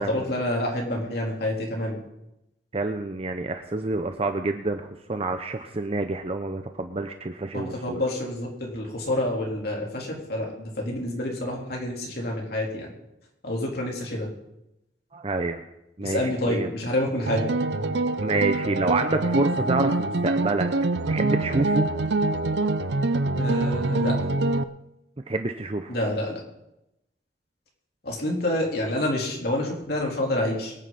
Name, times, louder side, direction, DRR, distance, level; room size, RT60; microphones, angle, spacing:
voice 1, 0.1-2.0 7.5-12.9 13.4-14.3 16.0-17.5 23.3-24.2 25.9-26.4 28.0-30.7, left 1 dB, 60° left, -1 dB, 3.8 m, -28 dB
voice 2, 2.7-8.0 15.1-15.6 16.0-16.7 18.2-20.7 21.1-21.9 25.3-26.0, right 2 dB, 35° right, 7 dB, 0.7 m, -28 dB
sound 1, 17.3-24.6, right 2 dB, 75° right, 0.7 m, -25 dB
23.5 x 9.7 x 4.1 m, 0.87 s
head